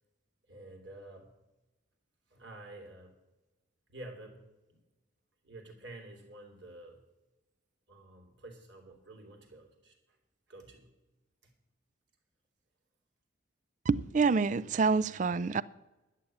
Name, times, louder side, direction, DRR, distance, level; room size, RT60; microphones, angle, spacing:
voice 1, 0.5-1.3 2.3-3.2 3.9-4.4 4.7-4.8 5.4-7.0 7.9-9.9 10.5-10.9 11.4-11.5, right 1 dB, 60° right, 2.8 m, -49 dB
voice 2, 13.9-15.6, right 4 dB, 40° right, 0.3 m, -27 dB
12.0 x 7.3 x 8.5 m
head